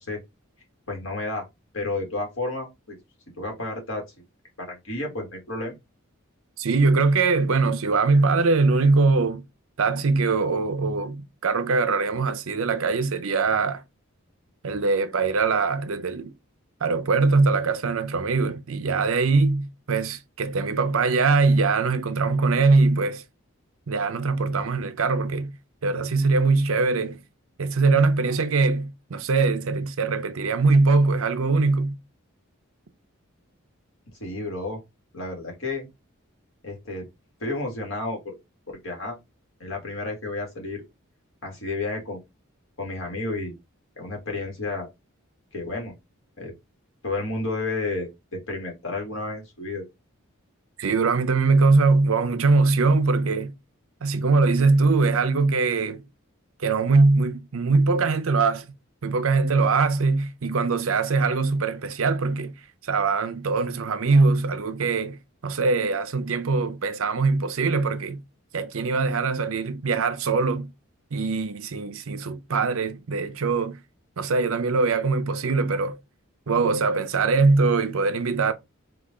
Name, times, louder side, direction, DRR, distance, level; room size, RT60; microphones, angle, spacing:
voice 1, 0.9-1.5 1.7-3.0 3.4-4.0 4.6-5.8 34.2-34.8 35.1-35.9 36.6-37.1 37.4-38.3 38.7-39.2 39.6-40.8 41.4-42.2 42.8-43.5 44.0-44.9 45.5-45.9 46.4-46.5 47.0-49.8, left 2 dB, 70° left, 1.9 m, -31 dB
voice 2, 6.6-9.4 9.8-13.8 14.6-16.3 16.8-23.2 23.9-25.6 25.8-27.2 27.6-32.0 50.8-53.5 54.0-56.0 56.6-58.7 59.0-62.5 62.8-68.2 68.5-70.7 71.1-73.8 74.2-76.0 76.5-78.5, right 3 dB, 75° right, 0.6 m, -22 dB
4.8 x 2.5 x 3.7 m
head